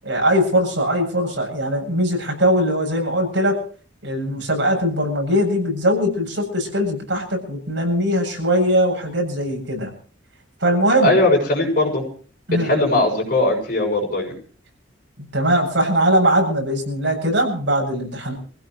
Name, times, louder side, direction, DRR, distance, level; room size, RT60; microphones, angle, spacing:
voice 1, 0.0-3.6 4.0-9.9 10.6-11.2 12.5-12.9 15.2-18.3, equal, 65° right, 2 dB, 7.7 m, -20 dB
voice 2, 11.0-12.0 12.6-14.3, left 2 dB, 45° left, -3 dB, 6.9 m, -19 dB
26.5 x 16.0 x 3.2 m, 0.42 s
head